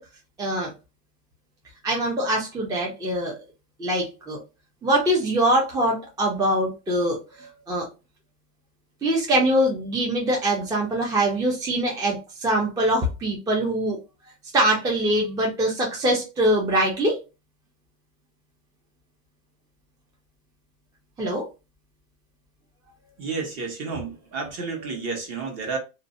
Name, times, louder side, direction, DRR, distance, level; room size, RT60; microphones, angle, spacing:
voice 1, 0.4-0.7 1.8-3.3 3.8-4.4 4.8-7.9 9.0-14.0 14.5-17.2 21.2-21.5, right 1 dB, 10° right, 0.4 m, -23 dB
voice 2, 23.2-25.8, right 4 dB, 40° right, 1.0 m, -31 dB
2.5 x 2.1 x 2.5 m
supercardioid pair, 120°, 39 cm